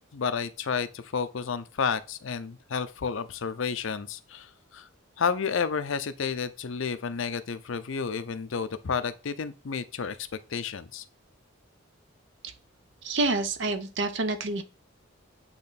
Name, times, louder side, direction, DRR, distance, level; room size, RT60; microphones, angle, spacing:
voice 1, 0.0-4.9 5.2-10.2 10.5-11.0, left 6 dB, 65° left, 0.5 m, -31 dB
voice 2, 13.0-14.6, right 2 dB, 60° right, 0.8 m, -28 dB
8.5 x 3.1 x 4.1 m
head